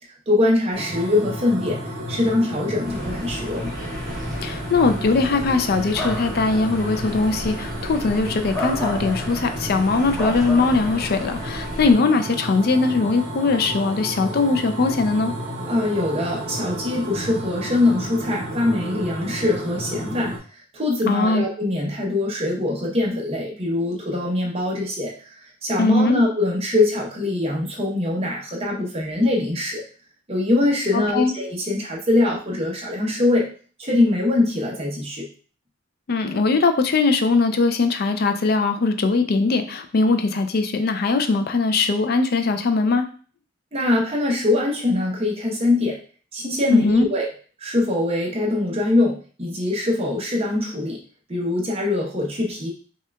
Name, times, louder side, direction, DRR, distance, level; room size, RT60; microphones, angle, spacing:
voice 1, 0.3-3.7 15.7-25.4 25.6-29.8 30.3-33.5 33.8-35.3 43.7-46.0 46.3-47.3 47.6-51.0 51.3-52.7, left 2 dB, 30° right, -2 dB, 0.8 m, -23 dB
sound 1, 0.7-20.4, equal, 60° right, 0.9 m, -32 dB
sound 2, 2.8-11.9, equal, ahead, 1.1 m, -32 dB
voice 2, 4.4-15.3 21.1-21.4 25.8-26.2 30.9-31.3 36.1-43.1 46.7-47.1, left 3 dB, 50° left, 7 dB, 0.4 m, -20 dB
5.6 x 2.3 x 2.2 m, 0.41 s
head